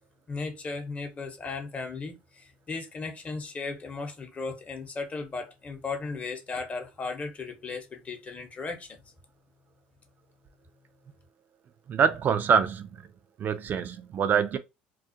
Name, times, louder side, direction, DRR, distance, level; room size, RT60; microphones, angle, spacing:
voice 1, 0.3-9.0, left 4 dB, 30° left, 0.8 m, -36 dB
voice 2, 11.9-12.9 13.4-14.6, right 7 dB, 45° right, 0.3 m, -24 dB
2.3 x 2.1 x 2.6 m
supercardioid pair, 85°, 4 cm